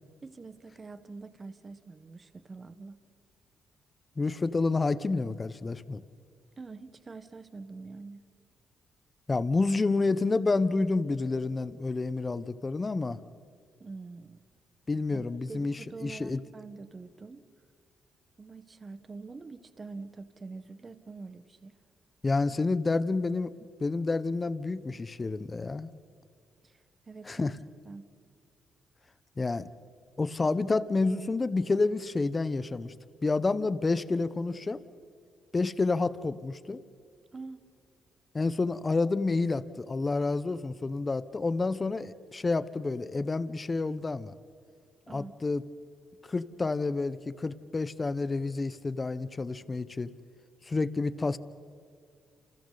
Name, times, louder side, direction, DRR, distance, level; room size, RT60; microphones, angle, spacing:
voice 1, 0.2-3.0 6.6-8.2 13.8-14.4 15.1-17.5 18.4-21.7 26.6-27.5 27.8-28.0 37.3-37.6 45.1-45.3, right 3 dB, 35° right, 11 dB, 1.5 m, -45 dB
voice 2, 4.2-6.0 9.3-13.2 14.9-16.4 22.2-23.5 23.8-25.9 27.3-27.5 29.4-29.7 30.2-32.9 33.2-34.8 35.5-36.8 38.3-44.3 45.1-45.6 46.2-50.1 50.6-51.4, left 3 dB, 30° left, 14 dB, 1.2 m, -29 dB
29.0 x 28.5 x 4.3 m, 2.3 s
supercardioid pair, 65°, 0 cm